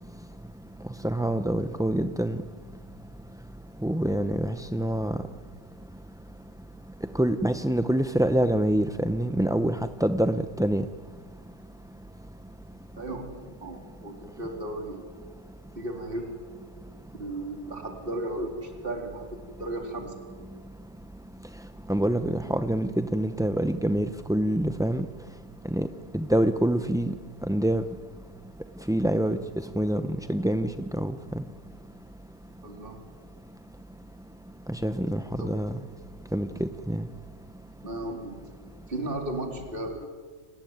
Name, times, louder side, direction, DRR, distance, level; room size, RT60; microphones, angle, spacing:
voice 1, 1.0-2.4 3.8-5.2 7.1-10.8 21.9-25.1 25.7-25.9 26.1-27.1 27.5-27.8 28.9-29.4 29.8-30.0 30.3-31.4 34.7-35.8 36.3-37.0, right 1 dB, 5° right, 9 dB, 0.5 m, -26 dB
voice 2, 13.0-15.1 15.8-16.3 17.2-20.5 32.6-33.0 35.4-35.6 37.8-38.4 38.9-40.1, right 1 dB, 45° right, 2 dB, 3.9 m, -35 dB
29.5 x 19.5 x 9.5 m, 1.5 s
omnidirectional pair, 1.3 m